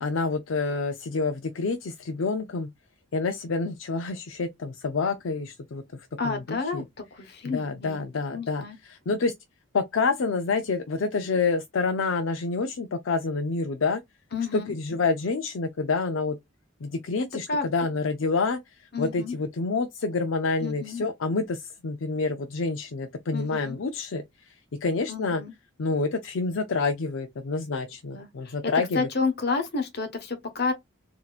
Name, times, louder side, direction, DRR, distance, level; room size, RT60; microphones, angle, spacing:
voice 1, 0.0-2.7 3.1-6.8 7.4-9.3 9.7-14.0 14.5-16.4 16.8-17.5 17.7-25.4 25.8-29.1, left 4 dB, 70° left, 0.5 m, -28 dB
voice 2, 6.2-6.8 7.1-8.8 14.3-14.7 17.5-17.7 18.9-19.4 20.6-21.0 23.3-23.7 25.1-25.5 28.1-28.6 28.9-30.7, left 4 dB, 50° left, 1.1 m, -30 dB
4.1 x 2.8 x 2.4 m
head